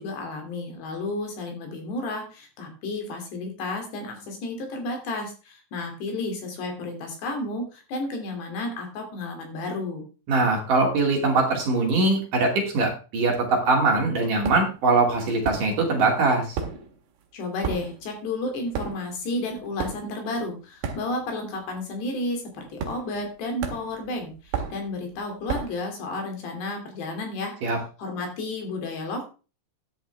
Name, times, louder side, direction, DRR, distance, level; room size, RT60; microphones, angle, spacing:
voice 1, 0.0-10.0 17.3-27.5 28.0-29.3, left 2 dB, 65° left, 3 dB, 4.8 m, -32 dB
voice 2, 10.3-16.6 27.6-27.8, right 3 dB, 50° right, 0 dB, 3.6 m, -22 dB
sound 1, 14.4-14.8 15.4-16.1 16.3-21.5 21.7-22.0 22.8-23.3 23.6-25.9, right 6 dB, 65° right, 3.5 m, -33 dB
14.5 x 9.9 x 3.5 m, 0.34 s
omnidirectional pair, 5.4 m